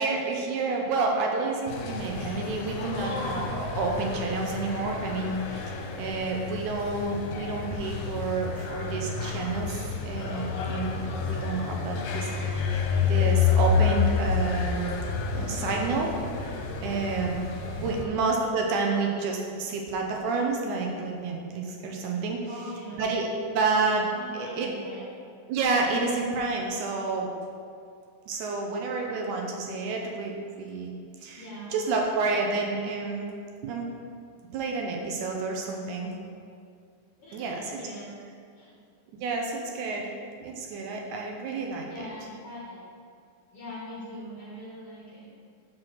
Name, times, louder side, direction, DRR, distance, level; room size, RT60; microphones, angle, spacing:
voice 1, 0.0-14.9 15.3-16.1 16.4-17.4 17.8-22.4 23.0-23.3 23.5-24.0 24.3-24.7 25.5-27.3 28.3-30.9 31.2-33.3 33.6-33.9 34.5-36.1 37.3-37.7 39.2-40.1 40.4-42.1, right 3 dB, 75° right, 0 dB, 2.0 m, -29 dB
sound 1, 1.7-18.0, left 5 dB, 80° left, 2.1 m, -29 dB
voice 2, 17.8-18.1 22.5-23.0 24.1-25.1 31.3-31.7 37.2-38.2 38.6-38.8 41.9-42.8 43.5-45.3, equal, 60° left, -6 dB, 1.7 m, -42 dB
5.8 x 4.7 x 6.2 m, 2.3 s
omnidirectional pair, 3.7 m